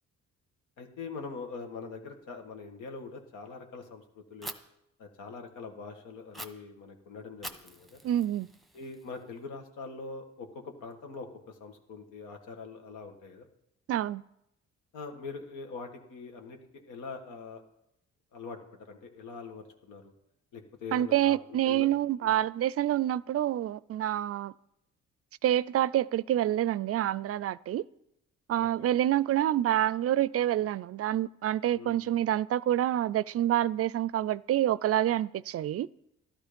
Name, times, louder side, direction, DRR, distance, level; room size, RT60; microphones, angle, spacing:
voice 1, 0.8-4.5 5.0-8.0 8.7-10.5 10.8-13.5 14.9-17.6 18.3-20.1 20.5-21.9 22.2-22.3 28.6-28.9 31.7-32.2, left 4 dB, 90° left, 1.9 m, -43 dB
Fire, 4.4-4.5 6.3-6.5 7.4-9.4, right 1 dB, ahead, 1.1 m, -44 dB
voice 2, 8.0-8.5 13.9-14.2 20.9-24.5 25.4-27.8 28.5-35.9, right 12 dB, 50° right, 0.4 m, -27 dB
12.5 x 12.5 x 5.2 m
cardioid pair, 90°, 30 cm